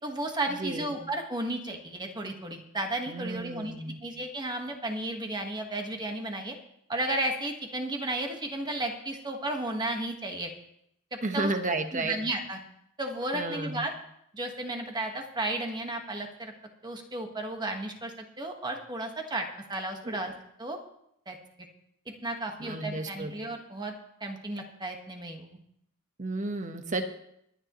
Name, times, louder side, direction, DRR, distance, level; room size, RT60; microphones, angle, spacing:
voice 1, 0.0-3.7 4.0-6.5 6.9-10.5 11.1-11.5 11.9-12.6 13.0-13.9 14.3-16.5 16.8-20.3 20.6-20.8 21.3-21.4 22.2-23.9 24.2-25.5, right 1 dB, 20° right, 3 dB, 1.5 m, -33 dB
voice 2, 0.6-1.0 3.1-4.0 11.2-12.2 13.3-13.8 20.0-20.2 22.6-23.3 26.2-27.0, right 2 dB, 35° right, 6 dB, 1.1 m, -32 dB
22.0 x 9.8 x 3.1 m, 0.75 s
head